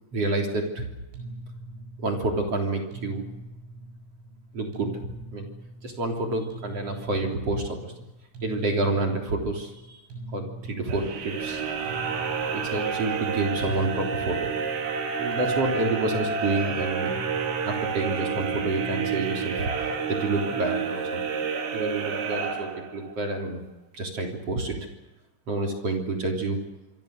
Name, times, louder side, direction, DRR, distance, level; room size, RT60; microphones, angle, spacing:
voice 1, 0.1-0.9 2.0-3.2 4.5-4.9 5.3-5.5 5.8-7.9 8.4-10.0 10.3-11.6 12.5-14.5 15.2-17.1 17.6-19.7 20.1-21.2 21.7-23.6 23.9-24.8 25.5-26.6, right 2 dB, 35° right, 2 dB, 3.8 m, -28 dB
sound 1, 1.1-20.4, right 1 dB, 70° right, 8.7 m, -43 dB
Thunder, 10.9-16.2, left 4 dB, 65° left, 6.3 m, -50 dB
sound 2, 10.9-23.2, right 6 dB, 85° right, 5.7 m, -29 dB
26.5 x 25.0 x 6.7 m, 1.0 s
omnidirectional pair, 5.7 m